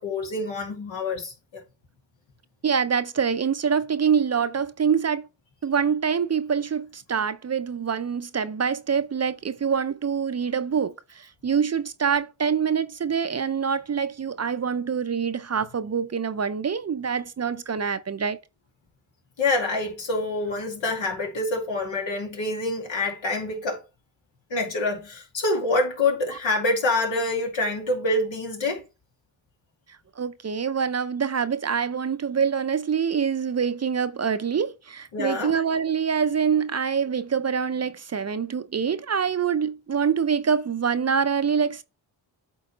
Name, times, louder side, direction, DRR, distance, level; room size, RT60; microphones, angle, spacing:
voice 1, 0.0-1.6 19.4-23.8 24.5-28.8 35.1-35.5, left 2 dB, 75° left, 2.5 m, -26 dB
voice 2, 2.6-5.3 5.6-18.4 30.2-41.8, right 6 dB, 35° right, 0.6 m, -25 dB
8.5 x 3.8 x 4.1 m
cardioid pair, 50°, 45 cm